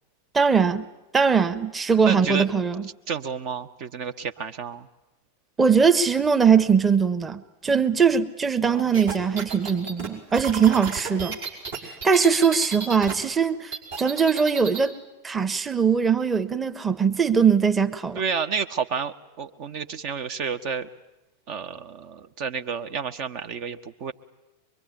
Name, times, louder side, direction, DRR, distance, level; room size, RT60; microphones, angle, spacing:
voice 1, 0.3-0.8 1.1-2.8 5.6-11.4 12.0-14.9 15.2-18.2, right 6 dB, 15° right, 9 dB, 1.1 m, -21 dB
voice 2, 2.0-2.5 3.1-4.9 8.7-8.8 10.7-10.8 18.1-20.9 21.5-24.1, right 6 dB, 45° right, 8 dB, 1.0 m, -30 dB
sound 1, 8.9-13.1 13.4-14.9, right 6 dB, 60° right, 5.5 m, -33 dB
23.5 x 23.0 x 9.7 m, 1.0 s
figure-of-eight pair, 90°, 0 cm